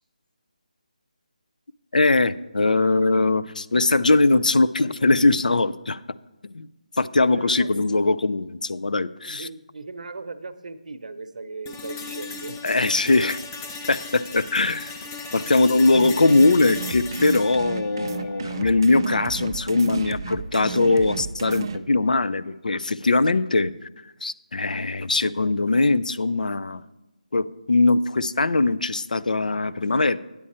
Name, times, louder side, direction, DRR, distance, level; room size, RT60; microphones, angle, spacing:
voice 1, 1.9-6.0 6.4-6.7 7.0-9.5 12.6-13.4 13.9-14.9 15.3-23.9 24.2-26.8 27.3-30.2, left 3 dB, 80° left, 15 dB, 0.5 m, -21 dB
voice 2, 7.2-7.9 9.2-13.1, right 3 dB, 65° right, 10 dB, 0.8 m, -38 dB
sound 1, 11.7-19.7, left 4 dB, 20° left, 0.7 m, -37 dB
sound 2, 15.9-21.8, right 6 dB, 30° right, 0.4 m, -33 dB
9.8 x 8.5 x 4.3 m, 0.98 s
figure-of-eight pair, 165°, 4 cm